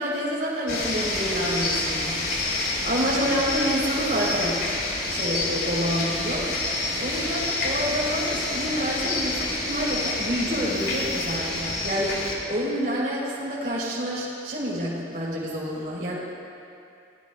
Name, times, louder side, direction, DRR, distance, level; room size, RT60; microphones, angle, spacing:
voice 1, 0.0-2.2 2.8-4.6 5.1-6.4 7.0-16.2, equal, 50° right, -6 dB, 3.9 m, -28 dB
sound 1, 0.7-12.4, left 2 dB, 60° left, 3.3 m, -28 dB
29.0 x 18.5 x 2.4 m, 2.5 s
head